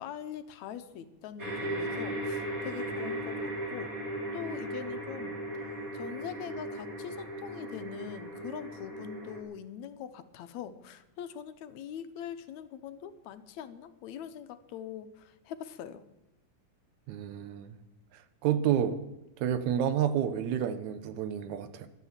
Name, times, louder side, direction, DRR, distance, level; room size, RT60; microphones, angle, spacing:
voice 1, 0.0-3.9 4.3-5.4 5.9-16.0, left 9 dB, 75° left, 11 dB, 2.1 m, -42 dB
sound 1, 1.4-9.4, right 1 dB, 30° right, 2.4 m, -37 dB
voice 2, 17.1-17.8 18.4-19.0 19.4-21.9, right 9 dB, 80° right, 11 dB, 2.3 m, -29 dB
12.0 x 12.0 x 7.3 m, 0.92 s
omnidirectional pair, 3.3 m